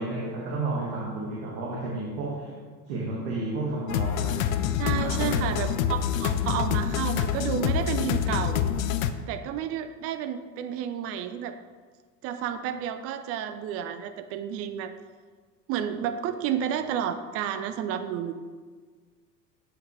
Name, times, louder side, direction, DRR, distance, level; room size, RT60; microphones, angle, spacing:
voice 1, 0.0-2.5 2.9-4.6 4.9-5.7, right 2 dB, 55° right, -4 dB, 1.8 m, -32 dB
sound 1, 3.9-9.1, left 9 dB, 55° left, 0.6 m, -26 dB
voice 2, 4.8-8.6 9.3-11.6 12.2-14.9 15.7-18.3, right 9 dB, 30° right, 9 dB, 0.5 m, -31 dB
8.5 x 7.1 x 3.2 m, 1.5 s
figure-of-eight pair, 80°, 50 cm